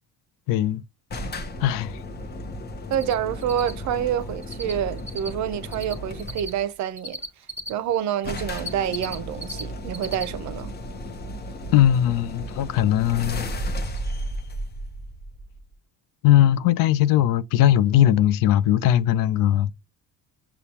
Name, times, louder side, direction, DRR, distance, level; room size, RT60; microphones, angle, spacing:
voice 1, 0.5-0.8 1.6-2.0 11.7-13.5 16.2-19.7, left 12 dB, 80° left, 0.5 m, -19 dB
sound 1, 1.1-6.6 7.6-7.7 7.9-8.0 8.2-15.7, equal, 30° left, 0.8 m, -34 dB
Cricket, 2.9-3.1 3.4-4.7 5.0-7.7 8.2-9.6 9.9-10.2 10.6-10.7 13.2-13.3 13.7-13.8 14.0-14.1, equal, 5° right, 1.1 m, -35 dB
voice 2, 2.9-7.2 7.7-10.7, right 9 dB, 60° right, 0.6 m, -27 dB
6.7 x 2.3 x 2.8 m
cardioid pair, 130°, 33 cm